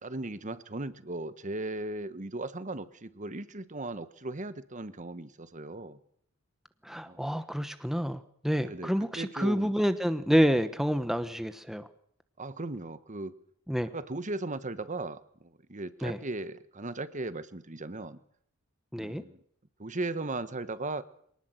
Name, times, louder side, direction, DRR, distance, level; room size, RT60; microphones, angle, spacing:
voice 1, 0.0-6.0 7.1-7.3 8.6-9.7 12.4-13.3 13.9-18.2 19.0-19.4 19.8-21.0, right 2 dB, 35° right, 13 dB, 1.2 m, -37 dB
voice 2, 6.8-11.9 13.7-13.9 16.0-16.2 18.9-19.2, equal, ahead, 10 dB, 1.0 m, -28 dB
24.0 x 19.0 x 7.8 m, 0.65 s
head